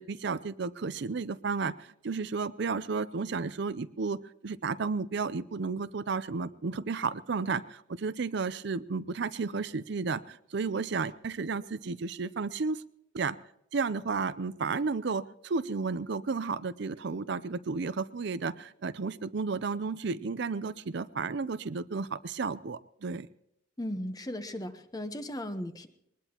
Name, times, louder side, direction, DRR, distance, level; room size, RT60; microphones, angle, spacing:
voice 1, 0.0-12.8 13.1-13.4 13.7-23.3, right 4 dB, 60° right, 14 dB, 0.5 m, -33 dB
voice 2, 23.8-25.9, left 1 dB, 20° left, 9 dB, 1.0 m, -36 dB
22.0 x 19.5 x 2.9 m, 0.79 s
head